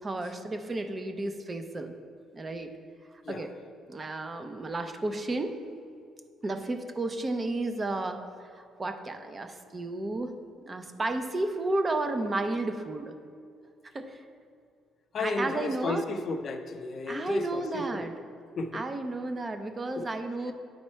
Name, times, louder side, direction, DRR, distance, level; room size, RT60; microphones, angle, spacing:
voice 1, 0.0-1.9 2.3-2.7 3.3-3.5 3.9-5.5 6.4-10.3 10.7-13.2 13.9-14.2 15.2-16.1 17.1-18.1 18.7-20.5, right 2 dB, 25° right, 7 dB, 0.5 m, -32 dB
voice 2, 15.1-18.0 18.6-18.8 20.0-20.1, left 3 dB, 45° left, 8 dB, 0.4 m, -33 dB
9.0 x 4.3 x 4.4 m, 2.3 s
cardioid pair, 135°, 0 cm